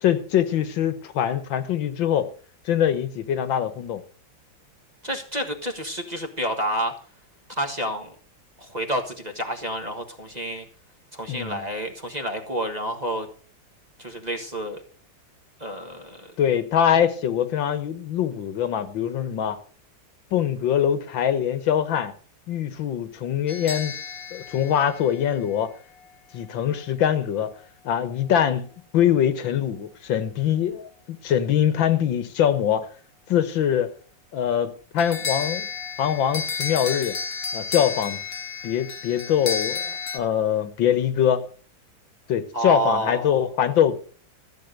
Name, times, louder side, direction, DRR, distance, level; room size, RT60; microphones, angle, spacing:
voice 1, 0.0-2.3 2.7-4.0 11.3-11.6 16.4-19.6 20.3-22.1 22.5-23.9 24.3-25.7 26.3-27.5 27.9-32.9 33.3-33.9 34.3-35.7 36.0-37.2 37.5-38.2 38.6-41.4 42.3-44.0, left 9 dB, 85° left, 1.9 m, -23 dB
voice 2, 5.0-6.9 7.6-8.1 8.6-10.6 11.1-13.3 14.0-14.8 15.6-16.3 42.5-43.4, right 1 dB, 25° right, 1.4 m, -29 dB
sound 1, 23.5-25.7 35.0-40.2, left 5 dB, 35° left, 1.1 m, -32 dB
13.5 x 7.6 x 6.6 m
omnidirectional pair, 2.1 m